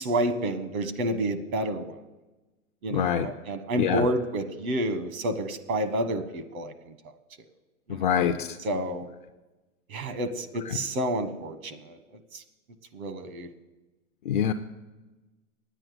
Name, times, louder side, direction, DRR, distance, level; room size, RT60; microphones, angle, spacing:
voice 1, 0.0-1.9 2.8-6.7 7.9-8.1 8.6-9.1 9.9-12.0 12.3-12.4 12.9-13.5, right 1 dB, 70° right, 11 dB, 1.4 m, -29 dB
voice 2, 2.9-3.3 3.8-4.1 7.9-8.6 10.7-10.8 14.3-14.5, left 9 dB, 40° left, 6 dB, 0.4 m, -25 dB
9.8 x 9.1 x 7.8 m, 1.1 s
hypercardioid pair, 145°, 44 cm